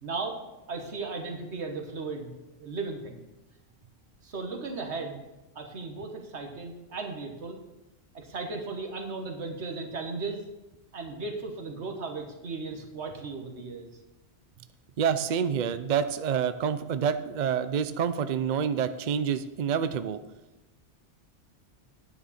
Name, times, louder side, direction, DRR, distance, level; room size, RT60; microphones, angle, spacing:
voice 1, 0.0-0.4 0.7-3.2 4.2-5.2 5.5-7.6 8.1-10.4 10.9-13.9, right 3 dB, 80° right, 3 dB, 1.6 m, -36 dB
voice 2, 15.0-20.2, right 7 dB, 55° right, 11 dB, 0.5 m, -27 dB
9.7 x 9.6 x 4.2 m, 1.0 s
omnidirectional pair, 1.1 m